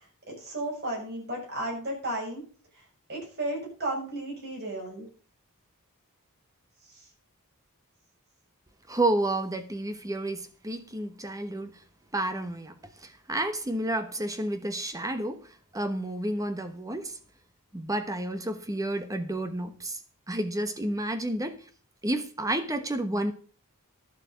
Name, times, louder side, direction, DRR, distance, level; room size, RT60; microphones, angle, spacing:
voice 1, 0.3-2.4 3.1-5.1, right 1 dB, 45° right, -1 dB, 7.1 m, -33 dB
voice 2, 8.9-11.7 12.1-12.7 13.0-17.2 17.7-20.0 20.3-21.6 22.0-23.3, right 1 dB, 15° right, 8 dB, 1.1 m, -30 dB
12.0 x 7.3 x 6.9 m, 0.41 s
head